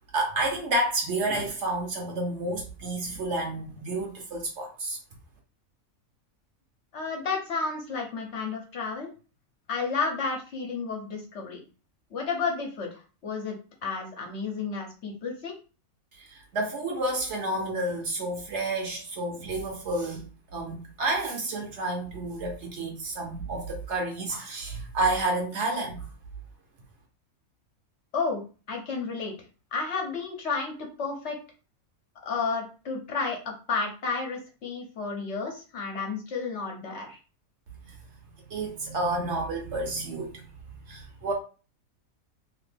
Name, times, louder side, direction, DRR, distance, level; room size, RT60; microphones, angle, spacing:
voice 1, 0.1-5.0 16.1-20.2 20.5-26.1 37.8-38.0 38.5-40.5 40.8-41.3, right 2 dB, 60° right, 1.1 m, -30 dB
voice 2, 6.9-9.1 9.7-11.6 12.1-15.5 28.1-28.4 28.7-29.3 29.7-31.4 32.2-37.2, left 4 dB, 60° left, 0.9 m, -32 dB
2.9 x 2.5 x 3.3 m
omnidirectional pair, 1.5 m